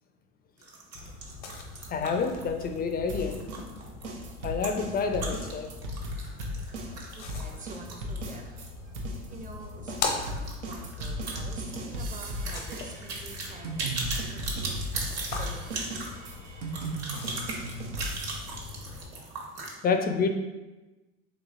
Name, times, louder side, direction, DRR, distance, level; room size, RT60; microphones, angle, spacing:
sound 1, 0.6-8.8 9.0-9.1 9.4-9.5 9.9-19.7, right 3 dB, 45° right, 1.1 m, -39 dB
sound 2, 0.9-19.1, left 4 dB, 80° left, 0.7 m, -41 dB
voice 1, 1.9-3.4 4.4-5.7 14.5-14.6 19.8-20.3, left 5 dB, 30° left, 6 dB, 0.4 m, -28 dB
sound 3, 3.1-8.7 8.9-18.7, equal, 85° right, 0.7 m, -36 dB
voice 2, 6.4-8.9 9.3-14.8 15.4-15.8, right 3 dB, 25° right, 2 dB, 0.6 m, -48 dB
4.0 x 3.3 x 2.4 m, 1.1 s
hypercardioid pair, 75°, 35 cm